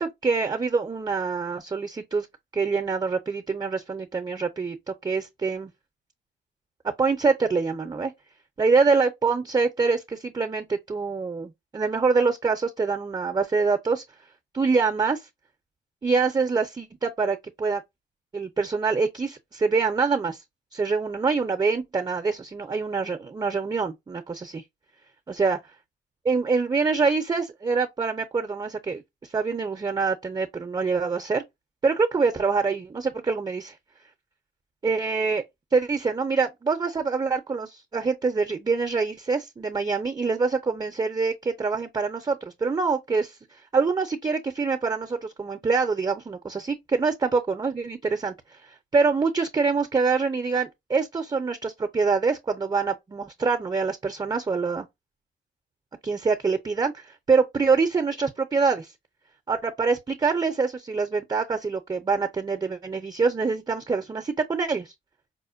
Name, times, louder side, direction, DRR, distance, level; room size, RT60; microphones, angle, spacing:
voice 1, 0.0-2.3 2.5-5.7 7.0-8.1 8.6-14.0 14.5-15.3 16.0-17.8 18.3-20.4 20.7-24.6 25.3-25.6 26.2-31.4 31.8-33.8 34.8-35.4 35.7-43.4 43.7-48.3 48.6-54.9 56.0-58.9 59.5-64.9, right 4 dB, 20° right, 0.5 m, -25 dB
4.9 x 2.1 x 2.5 m
cardioid pair, 90°, 20 cm